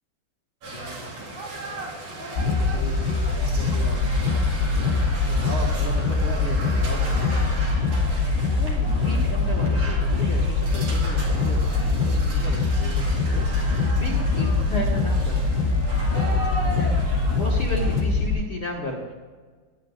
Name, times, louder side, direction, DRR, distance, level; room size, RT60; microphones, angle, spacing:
sound 1, 0.6-18.0, right 1 dB, 50° right, 2.1 m, -36 dB
voice 1, 0.7-1.1 2.6-3.0 3.4-4.0 5.3-7.2 8.6-15.7 16.8-16.9 17.4-19.1, left 1 dB, 70° left, -5 dB, 1.2 m, -34 dB
sound 2, 2.4-18.4, left 3 dB, 90° left, 4.2 m, -23 dB
21.5 x 9.9 x 2.5 m, 1.5 s
omnidirectional pair, 5.1 m